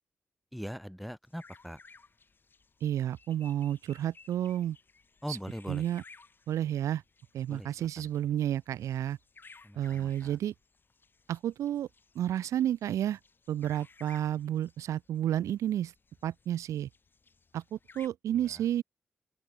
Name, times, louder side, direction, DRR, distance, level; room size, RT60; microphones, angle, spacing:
voice 1, 0.5-1.8 5.2-5.8 7.5-8.1 9.6-10.4 18.3-18.6, equal, ahead, 2.4 m, -41 dB
sound 1, 1.3-18.1, left 4 dB, 40° left, 4.8 m, -59 dB
voice 2, 2.8-4.8 5.3-5.4 5.7-6.0 6.5-7.0 7.3-9.2 9.8-10.5 11.3-11.9 12.2-13.2 13.5-15.9 16.2-16.9 17.5-18.8, right 11 dB, 80° right, 0.4 m, -31 dB
open air
cardioid pair, 55°, 5 cm